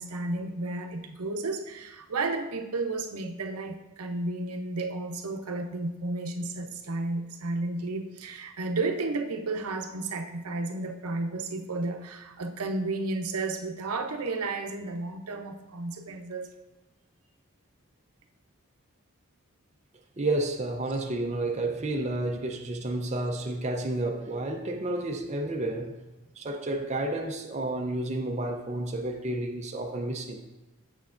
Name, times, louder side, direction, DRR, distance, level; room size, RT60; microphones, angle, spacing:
voice 1, 0.0-16.5, right 2 dB, 90° right, 0.7 m, -32 dB
voice 2, 20.2-26.0 26.4-30.4, right 2 dB, 30° right, 0.5 m, -31 dB
8.3 x 6.8 x 2.5 m
head